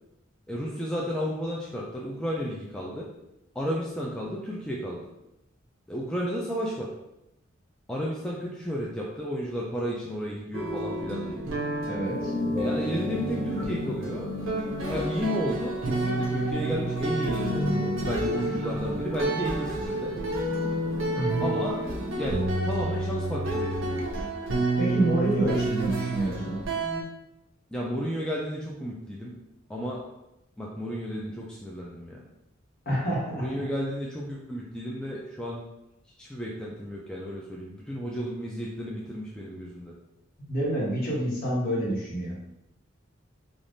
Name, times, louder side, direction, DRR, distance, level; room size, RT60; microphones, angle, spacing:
voice 1, 0.5-3.1 3.6-5.1 5.9-6.9 7.9-11.5 12.6-14.3 14.9-17.4 18.0-20.1 21.4-21.8 22.1-24.0 27.7-29.4 29.7-30.0 30.6-32.2 33.4-35.6 36.2-39.9, equal, 5° left, -4 dB, 0.3 m, -32 dB
sound 1, 10.5-27.0, right 2 dB, 80° right, 0.6 m, -30 dB
voice 2, 11.9-12.3 21.1-21.5 24.8-26.6 32.8-33.6 40.4-42.4, right 1 dB, 50° left, -6 dB, 1.1 m, -28 dB
sound 2, 12.0-22.3, left 2 dB, 20° left, 0.9 m, -34 dB
3.4 x 2.4 x 2.5 m, 0.88 s
head